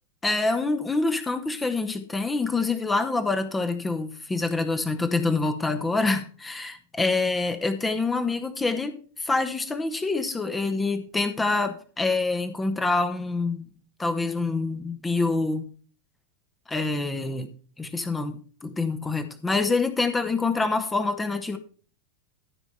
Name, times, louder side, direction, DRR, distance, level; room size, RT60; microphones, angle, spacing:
voice 1, 0.2-13.7 14.0-15.6 16.7-17.5 17.8-21.6, left 3 dB, 10° left, 8 dB, 1.1 m, -26 dB
13.5 x 5.0 x 5.6 m, 0.40 s
figure-of-eight pair, 90°, 0 cm